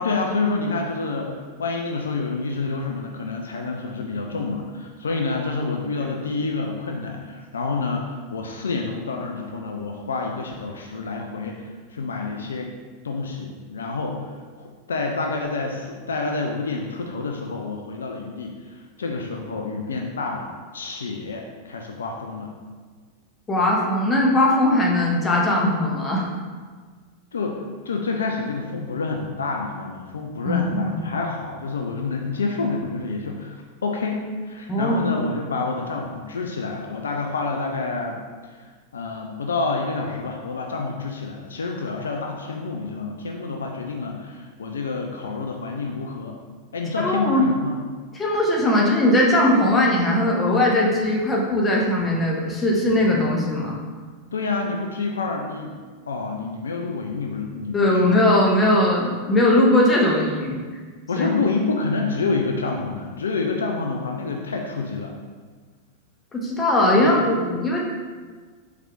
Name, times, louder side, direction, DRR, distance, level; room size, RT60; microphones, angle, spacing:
voice 1, 0.0-12.7 13.0-22.5 27.3-38.2 38.5-46.4 46.7-47.8 54.3-55.8 56.1-58.2 61.1-65.2 66.9-67.1, left 3 dB, 70° left, 2 dB, 0.3 m, -28 dB
voice 2, 23.5-26.3 30.5-31.0 34.7-35.1 47.0-47.4 48.1-53.8 57.7-60.6 61.2-61.3 66.3-67.8, left 1 dB, 20° left, -2 dB, 0.8 m, -19 dB
4.4 x 3.3 x 2.4 m, 1.5 s
figure-of-eight pair, 90°, 0 cm